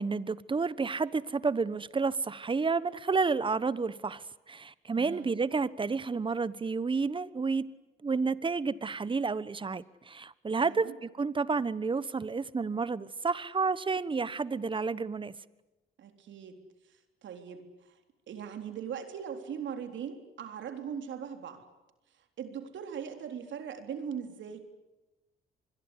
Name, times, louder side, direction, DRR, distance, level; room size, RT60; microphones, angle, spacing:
voice 1, 0.0-7.7 8.0-15.4, right 4 dB, 25° right, 18 dB, 1.1 m, -30 dB
voice 2, 4.9-5.3 10.6-11.0 16.0-16.6 16.8-18.0 18.3-21.6 22.4-24.6, right 7 dB, 70° right, 6 dB, 3.8 m, -40 dB
25.5 x 21.5 x 9.8 m, 1.0 s
cardioid pair, 90°, 20 cm